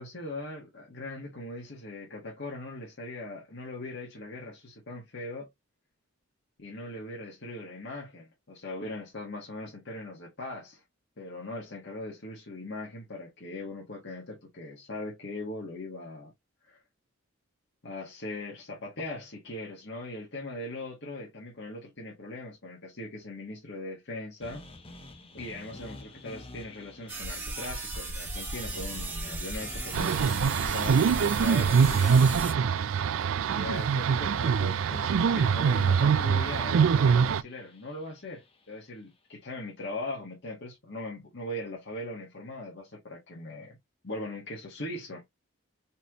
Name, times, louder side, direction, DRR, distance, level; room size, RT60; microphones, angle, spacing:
voice 1, 0.0-5.5 6.6-10.8 11.2-16.3 16.6-16.8 17.8-24.6 25.3-32.3 33.5-43.8 44.0-45.2, left 2 dB, 60° left, 1.6 m, -40 dB
sound 1, 24.4-38.6, left 2 dB, 30° left, 0.9 m, -49 dB
sound 2, 27.1-32.5, right 2 dB, 10° right, 1.6 m, -36 dB
sound 3, 29.9-37.4, right 6 dB, 75° right, 0.4 m, -24 dB
4.2 x 3.4 x 3.0 m
head